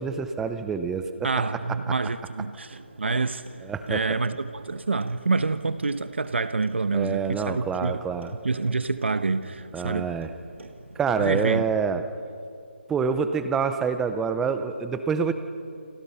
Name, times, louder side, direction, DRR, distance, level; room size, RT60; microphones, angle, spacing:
voice 1, 0.0-1.3 3.6-4.0 6.9-8.3 9.7-10.3 11.0-12.0 12.9-15.3, right 6 dB, 5° right, 0.6 m, -26 dB
voice 2, 1.2-3.4 3.9-8.0 8.4-10.1 11.2-11.6, right 3 dB, 70° right, 1.1 m, -27 dB
Clock, 2.7-11.8, right 2 dB, 90° right, 2.7 m, -47 dB
28.5 x 23.0 x 5.7 m
figure-of-eight pair, 170°, 6 cm